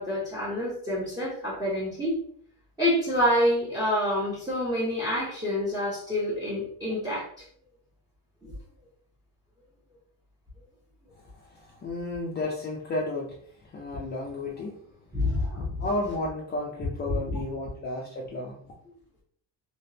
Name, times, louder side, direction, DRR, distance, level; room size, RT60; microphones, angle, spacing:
voice 1, 0.0-2.1 2.8-7.5 8.4-8.5 15.1-15.8 17.1-17.2, left 1 dB, 10° right, -7 dB, 0.8 m, -27 dB
voice 2, 11.1-15.1 15.8-18.6, left 2 dB, 30° left, -3 dB, 0.5 m, -33 dB
3.4 x 2.9 x 2.8 m, 0.62 s
cardioid pair, 170°, 37 cm